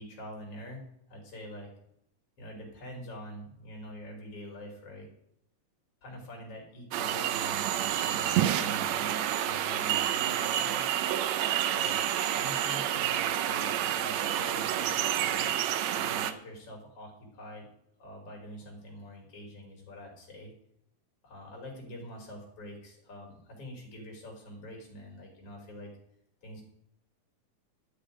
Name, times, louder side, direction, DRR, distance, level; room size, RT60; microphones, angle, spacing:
voice 1, 0.0-1.7 2.4-5.1 6.0-10.8 11.6-12.1 12.3-15.5 15.9-17.7 18.0-20.5 21.2-25.9 26.4-26.7, equal, 50° left, -1 dB, 4.3 m, -45 dB
sound 1, 6.9-16.3, right 11 dB, 70° right, 1.8 m, -29 dB
12.5 x 9.8 x 5.0 m, 0.73 s
omnidirectional pair, 3.6 m